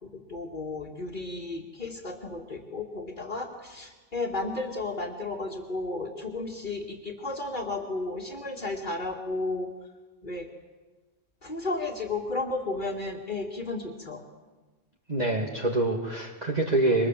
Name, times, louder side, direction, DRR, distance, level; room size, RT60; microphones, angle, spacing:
voice 1, 0.0-9.7 10.2-10.5 11.4-14.2, left 2 dB, 40° left, -2 dB, 2.5 m, -33 dB
voice 2, 15.1-17.1, right 2 dB, 30° right, -1 dB, 2.4 m, -25 dB
29.0 x 25.0 x 7.6 m, 1.3 s
omnidirectional pair, 1.4 m